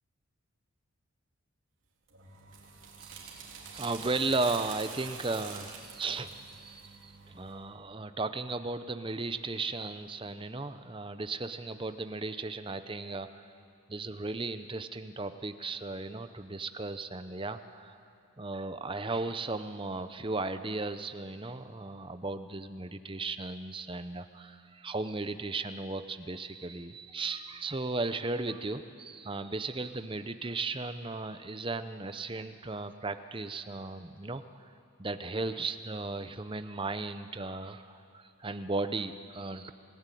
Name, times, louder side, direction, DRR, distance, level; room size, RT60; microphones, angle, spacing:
sound 1, 2.1-7.6, right 5 dB, 60° right, 3.7 m, -46 dB
voice 1, 3.0-3.4 3.7-13.5 13.9-18.0 18.4-34.4 35.0-39.7, right 3 dB, 25° right, 10 dB, 0.8 m, -36 dB
27.0 x 15.5 x 9.2 m, 2.5 s
head